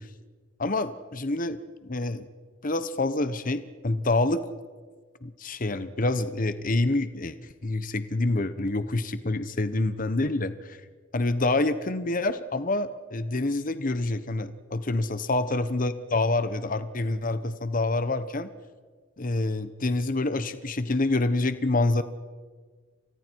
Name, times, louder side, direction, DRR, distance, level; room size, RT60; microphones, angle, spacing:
voice 1, 0.6-2.2 2.6-4.4 5.2-7.4 7.6-10.8 11.1-18.5 19.2-22.0, left 2 dB, 45° left, 11 dB, 1.1 m, -27 dB
29.5 x 26.0 x 4.7 m, 1.5 s
head